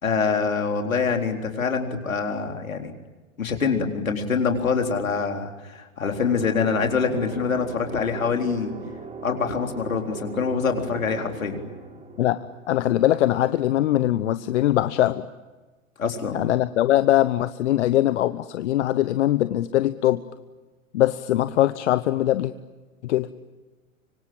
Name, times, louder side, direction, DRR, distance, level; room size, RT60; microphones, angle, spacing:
voice 1, 0.0-2.9 3.4-8.7 9.2-11.6 16.0-16.4, left 5 dB, 80° left, 3 dB, 4.1 m, -25 dB
sound 1, 6.0-13.7, right 4 dB, 20° right, 5.1 m, -39 dB
voice 2, 12.2-15.3 16.3-20.2 20.9-22.5 23.0-23.3, left 13 dB, 60° left, 13 dB, 1.0 m, -21 dB
25.5 x 25.0 x 8.8 m, 1.2 s
figure-of-eight pair, 100°, 40 cm